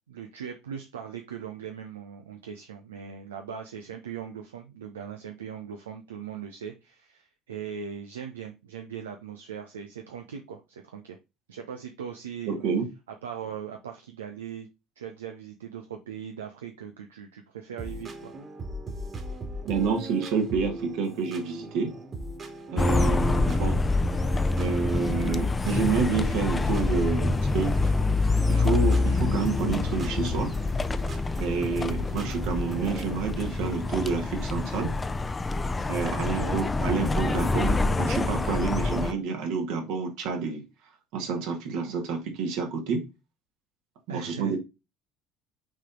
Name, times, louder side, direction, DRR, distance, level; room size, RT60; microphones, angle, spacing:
voice 1, 0.1-11.2 11.5-12.6 13.2-14.7 15.0-18.3 36.1-36.6 44.1-44.6, right 8 dB, 80° right, 0.7 m, -39 dB
voice 2, 12.5-12.9 19.6-22.0 22.7-23.8 24.6-27.7 28.5-30.5 31.4-35.0 35.9-40.6 41.1-43.1 44.1-44.6, right 5 dB, 65° right, 1.9 m, -29 dB
sound 1, 17.8-33.1, right 1 dB, 40° right, 2.1 m, -38 dB
sound 2, 22.8-39.1, left 3 dB, 20° left, 0.6 m, -26 dB
6.2 x 4.2 x 3.7 m
figure-of-eight pair, 60°, 0 cm